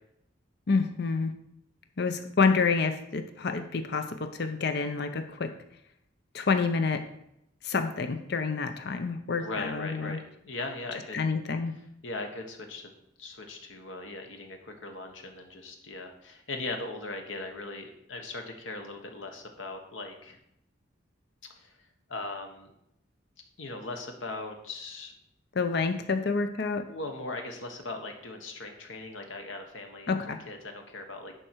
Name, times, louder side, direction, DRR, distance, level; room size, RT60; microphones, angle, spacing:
voice 1, 0.7-1.3 2.0-5.5 6.3-7.0 7.6-10.2 11.1-11.7 25.5-26.9 30.1-30.4, left 4 dB, 55° left, 8 dB, 0.6 m, -28 dB
voice 2, 9.4-11.2 12.0-12.9 13.2-20.4 21.6-21.7 22.1-22.7 23.6-25.1 26.9-31.4, left 2 dB, 75° left, 4 dB, 1.3 m, -39 dB
11.0 x 4.5 x 4.6 m, 0.78 s
head